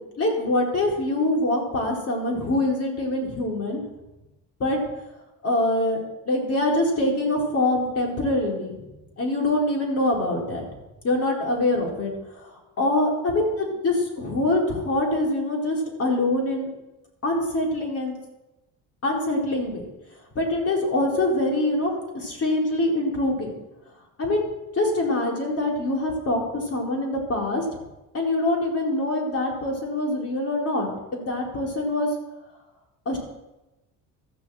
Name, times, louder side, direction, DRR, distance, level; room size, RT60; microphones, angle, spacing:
voice 1, 0.2-3.8 4.6-4.8 5.4-8.8 9.2-10.7 11.0-16.7 17.2-18.1 19.0-19.9 20.3-23.5 24.2-24.5 24.7-27.6 28.1-32.1 33.1-33.2, left 2 dB, 45° left, -1 dB, 4.3 m, -24 dB
14.0 x 6.7 x 7.7 m, 1.0 s
cardioid pair, 95°, 33 cm